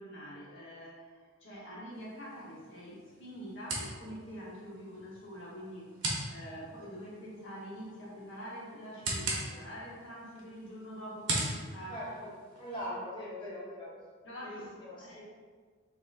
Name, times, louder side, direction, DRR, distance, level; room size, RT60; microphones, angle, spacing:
voice 1, 0.0-12.0 12.9-13.0 14.2-15.2, equal, 65° left, -5 dB, 0.9 m, -46 dB
sound 1, 1.9-12.9, right 2 dB, 65° right, 0.8 m, -41 dB
voice 2, 11.9-12.3 12.5-13.9 14.4-15.2, equal, 25° left, -7 dB, 0.8 m, -41 dB
4.3 x 2.9 x 2.4 m, 1.5 s
head